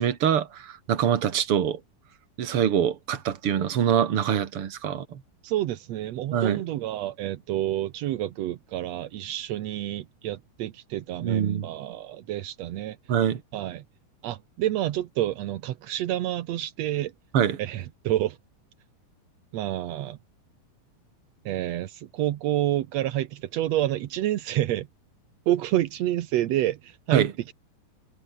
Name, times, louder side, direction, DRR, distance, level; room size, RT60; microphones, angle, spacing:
voice 1, 0.0-1.8 2.4-5.2 6.3-6.6 11.2-11.7 13.1-13.4 17.3-17.6 27.1-27.3, right 9 dB, 45° right, 2.2 m, -24 dB
voice 2, 5.4-13.0 13.5-13.8 14.2-17.1 17.6-18.4 19.5-20.2 21.5-24.9 25.5-27.3, right 13 dB, 75° right, 1.6 m, -28 dB
omnidirectional pair, 4.2 m